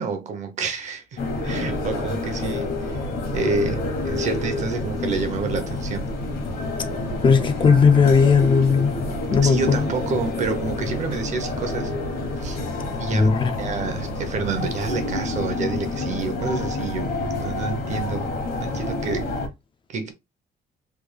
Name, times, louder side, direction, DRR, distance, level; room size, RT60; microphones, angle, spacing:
voice 1, 0.0-3.0 3.3-6.2 9.4-11.9 12.4-12.6 13.0-13.3 13.6-18.3 18.6-19.4 19.9-20.1, right 4 dB, 45° right, 0.8 m, -28 dB
sound 1, 1.2-19.5, left 2 dB, 70° left, 1.2 m, -28 dB
voice 2, 7.2-9.9 13.1-13.5, left 5 dB, 30° left, 0.4 m, -17 dB
3.4 x 2.2 x 3.2 m
cardioid pair, 165°, 16 cm